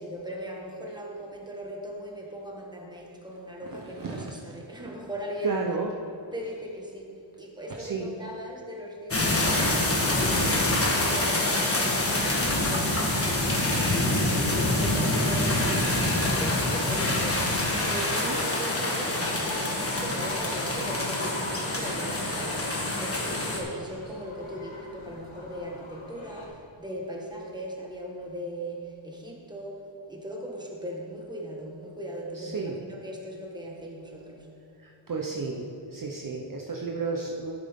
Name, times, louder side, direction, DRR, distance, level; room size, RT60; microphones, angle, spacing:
voice 1, 0.0-5.6 6.3-7.1 7.4-17.5 17.9-29.8 30.1-34.5, equal, 10° right, -1 dB, 1.4 m, -39 dB
voice 2, 3.6-4.3 4.7-4.9 5.4-5.9 6.4-6.6 7.7-8.1 18.2-18.5 32.3-32.8 34.8-37.6, right 4 dB, 45° right, 0 dB, 0.8 m, -33 dB
sound 1, 9.1-23.6, left 1 dB, 30° left, 1.3 m, -26 dB
sound 2, 19.2-26.5, left 2 dB, 75° left, 1.8 m, -42 dB
11.5 x 7.6 x 3.6 m, 2.6 s
wide cardioid pair, 125°, 48 cm